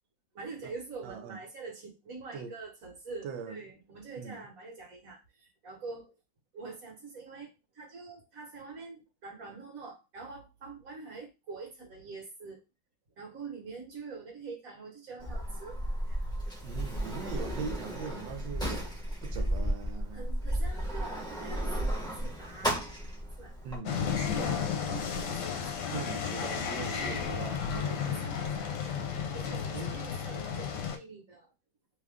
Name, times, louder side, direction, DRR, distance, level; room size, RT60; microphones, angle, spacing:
voice 1, 0.3-6.2 6.5-7.5 7.7-12.6 13.2-16.2 19.4-19.7 20.1-22.8 23.4-23.6 24.2-24.5 24.8-26.0 26.8-27.4 27.7-29.0 29.3-31.5, right 4 dB, 50° right, 1.5 m, -45 dB
voice 2, 1.0-1.4 2.3-2.5 3.2-3.6 4.2-4.5 16.6-19.0 19.2-20.3 23.6-24.9 25.9-28.3 29.7-29.9, right 6 dB, 85° right, 1.4 m, -41 dB
Sliding door, 15.2-23.8, right 1 dB, 5° left, 1.0 m, -34 dB
sound 1, 23.9-31.0, left 7 dB, 70° left, 1.2 m, -33 dB
3.3 x 2.4 x 3.5 m
omnidirectional pair, 2.0 m